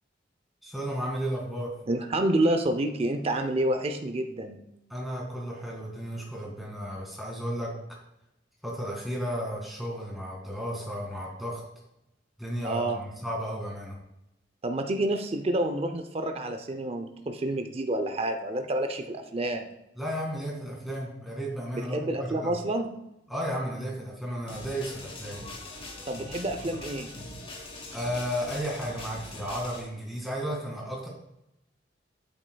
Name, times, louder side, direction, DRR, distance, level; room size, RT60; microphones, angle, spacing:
voice 1, 0.6-1.7 4.9-7.7 8.6-11.6 12.4-14.0 20.0-22.5 23.3-25.4 27.9-31.1, equal, ahead, -3 dB, 2.1 m, -33 dB
voice 2, 1.9-4.6 12.6-13.0 14.6-19.7 21.9-22.9 26.1-27.1, right 1 dB, 35° right, 6 dB, 0.5 m, -28 dB
sound 1, 24.5-29.8, left 2 dB, 30° left, 1.2 m, -42 dB
8.8 x 8.3 x 2.3 m, 0.88 s
head